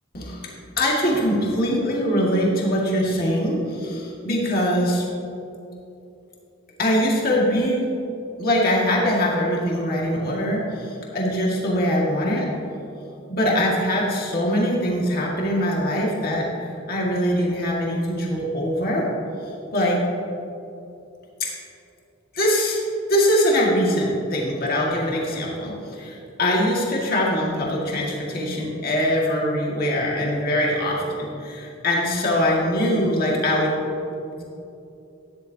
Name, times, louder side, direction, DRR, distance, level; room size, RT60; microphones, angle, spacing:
voice 1, 0.1-0.5 0.8-5.0 6.8-7.9 8.4-12.5 13.3-19.1 19.7-20.0 22.3-22.8 23.1-33.8 34.4-34.5, equal, 45° left, -3 dB, 1.9 m, -22 dB
12.5 x 10.5 x 2.8 m, 2.8 s
head